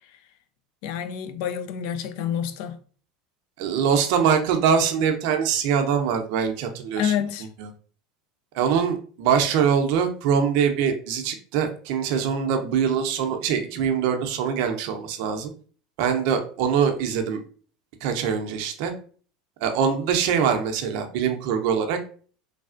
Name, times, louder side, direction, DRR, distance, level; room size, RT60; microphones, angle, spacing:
voice 1, 0.8-2.8 6.9-7.5, left 9 dB, 65° left, 0.4 m, -28 dB
voice 2, 3.6-7.1 7.6-7.7 8.5-15.5 16.0-17.4 18.0-18.9 19.6-22.0, right 7 dB, 65° right, 0.6 m, -23 dB
3.2 x 2.3 x 2.4 m
hypercardioid pair, 95°, 3 cm